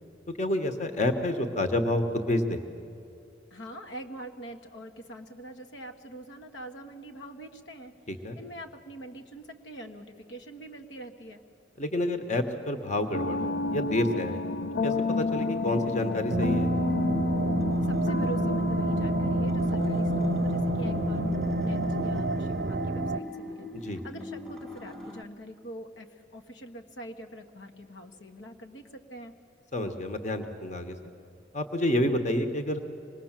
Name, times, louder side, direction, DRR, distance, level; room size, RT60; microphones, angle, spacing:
voice 1, 0.4-2.6 8.1-8.4 11.8-14.4 14.8-16.7 23.7-24.0 29.7-30.9 31.5-32.8, left 1 dB, 40° left, 7 dB, 1.3 m, -29 dB
voice 2, 3.5-7.9 8.3-11.4 17.8-21.3 21.6-29.3, right 1 dB, 80° left, 4 dB, 1.6 m, -44 dB
sound 1, 13.1-22.2, left 3 dB, 65° left, 0.6 m, -31 dB
sound 2, 14.9-25.2, left 2 dB, ahead, 0.8 m, -41 dB
sound 3, 16.3-23.2, right 2 dB, 55° right, 0.5 m, -28 dB
25.5 x 20.0 x 7.4 m, 2.6 s
head